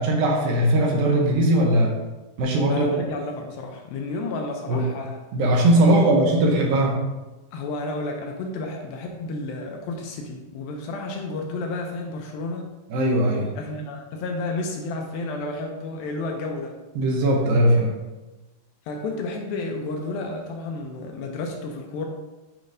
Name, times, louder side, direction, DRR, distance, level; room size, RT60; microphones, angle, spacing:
voice 1, 0.0-1.9 2.4-2.9 4.7-4.8 5.3-7.0 12.9-13.5 17.0-17.9, right 1 dB, 75° right, 0 dB, 2.4 m, -19 dB
voice 2, 2.7-5.2 5.7-6.1 7.5-12.7 13.6-16.8 18.9-22.1, left 2 dB, 80° left, 2 dB, 2.3 m, -31 dB
9.3 x 4.9 x 2.6 m, 1.1 s
omnidirectional pair, 4.5 m